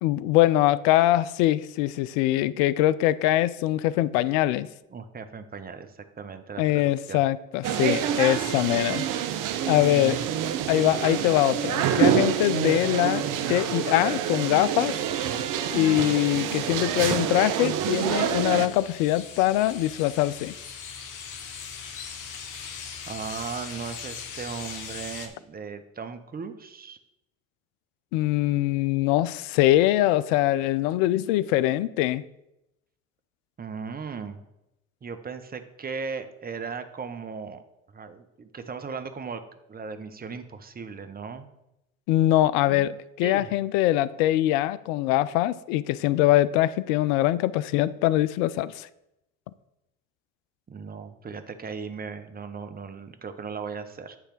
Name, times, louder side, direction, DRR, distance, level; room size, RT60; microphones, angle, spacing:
voice 1, 0.0-4.7 6.6-9.0 9.7-10.2 10.7-13.2 13.5-14.9 15.7-20.5 28.1-32.2 42.1-42.9 43.2-48.9, left 14 dB, 65° left, 0.5 m, -23 dB
voice 2, 4.9-7.2 9.8-10.3 23.1-27.0 33.6-34.4 35.0-37.6 37.9-39.4 39.7-41.5 42.7-42.9 43.2-43.5 50.7-54.2, right 5 dB, 20° right, 0.9 m, -37 dB
sound 1, 7.6-18.7, right 9 dB, 50° right, 0.7 m, -27 dB
sound 2, 17.8-25.3, left 6 dB, 50° left, 1.2 m, -40 dB
9.0 x 3.3 x 6.0 m
hypercardioid pair, 65°, 41 cm